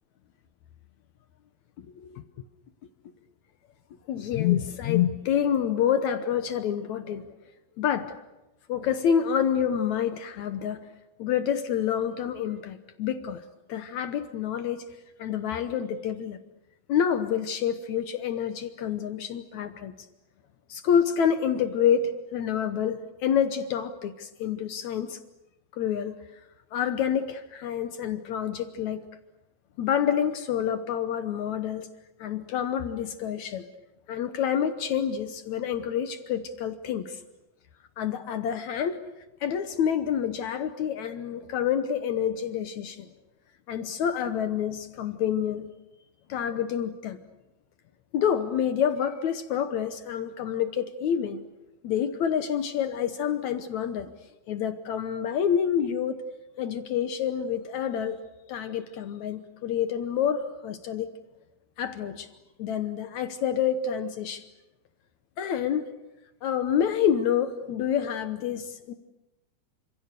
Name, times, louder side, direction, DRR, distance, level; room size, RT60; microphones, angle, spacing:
voice 1, 1.8-2.2 4.1-7.3 7.8-8.1 8.7-10.9 11.2-13.4 13.7-14.8 15.2-16.4 16.9-19.9 20.7-25.2 25.7-26.2 26.7-29.1 29.8-31.9 32.2-33.7 34.1-37.2 38.0-39.0 39.4-43.1 43.7-45.7 46.3-47.2 48.1-51.4 51.8-54.1 54.5-56.2 56.6-58.2 58.5-61.1 61.8-62.3 62.6-64.4 65.4-65.9 66.4-68.9, left 8 dB, 65° left, 10 dB, 2.1 m, -28 dB
29.5 x 26.5 x 6.8 m, 0.98 s
omnidirectional pair, 4.0 m